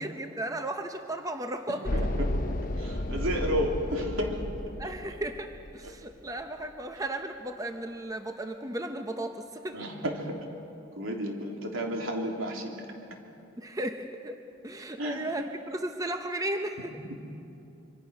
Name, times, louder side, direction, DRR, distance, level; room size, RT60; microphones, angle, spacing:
voice 1, 0.0-1.9 4.8-9.8 13.6-17.0, right 1 dB, 15° right, 6 dB, 0.8 m, -35 dB
sound 1, 1.9-6.1, left 1 dB, 45° left, 1.0 m, -32 dB
voice 2, 1.9-2.4 2.8-4.4 4.8-4.9 5.8-5.9 9.7-10.4 11.0-12.7 15.0-15.3, equal, 80° right, 1 dB, 3.2 m, -32 dB
25.5 x 24.5 x 6.4 m, 2.9 s
head